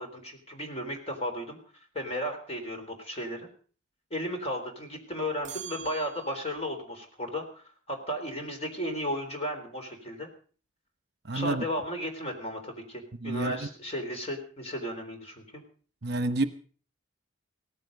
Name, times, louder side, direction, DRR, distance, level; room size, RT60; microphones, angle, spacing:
voice 1, 0.0-1.6 1.9-3.5 4.1-10.3 11.3-15.6, equal, 30° left, 3.8 m, -35 dB
sound 1, 5.4-6.8, right 8 dB, 35° right, 2.1 m, -44 dB
voice 2, 11.3-11.6 13.2-13.7 16.0-16.4, right 2 dB, 50° right, 1.0 m, -29 dB
17.5 x 14.5 x 5.3 m
head